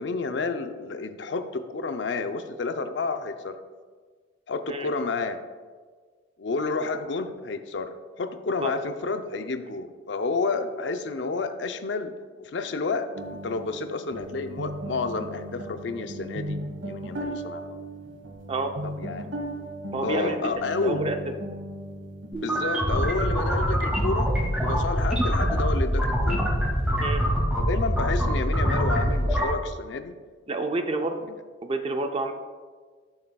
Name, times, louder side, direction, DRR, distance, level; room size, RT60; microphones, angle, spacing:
voice 1, 0.0-3.6 4.5-5.4 6.4-16.6 16.8-17.8 18.8-19.3 20.0-21.0 22.4-24.3 24.6-26.5 27.2-30.1, left 3 dB, 65° left, 8 dB, 0.5 m, -30 dB
sound 1, 13.1-22.8, right 1 dB, 90° right, 1.3 m, -37 dB
voice 2, 19.9-20.5 20.8-21.2 27.0-27.2 30.5-31.2 31.6-32.3, right 2 dB, 30° right, 6 dB, 0.4 m, -28 dB
sound 2, 22.3-29.4, equal, 5° right, 2.1 m, -24 dB
12.0 x 6.5 x 2.3 m, 1.5 s
head